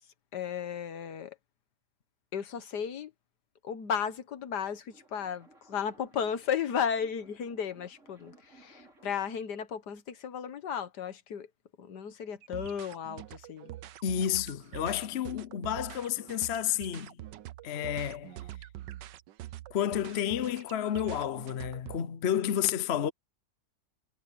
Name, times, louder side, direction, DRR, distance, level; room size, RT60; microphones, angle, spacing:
voice 1, 0.3-1.4 2.3-3.1 3.6-11.5 11.8-13.8, left 7 dB, 70° left, 1.8 m, -34 dB
sound 1, 4.5-9.4, right 2 dB, 45° right, 5.5 m, -60 dB
sound 2, 12.4-22.0, right 14 dB, 80° right, 1.4 m, -45 dB
voice 2, 14.0-17.2 17.6-18.4 19.7-23.1, left 10 dB, 50° left, 0.8 m, -31 dB
omnidirectional pair, 1.9 m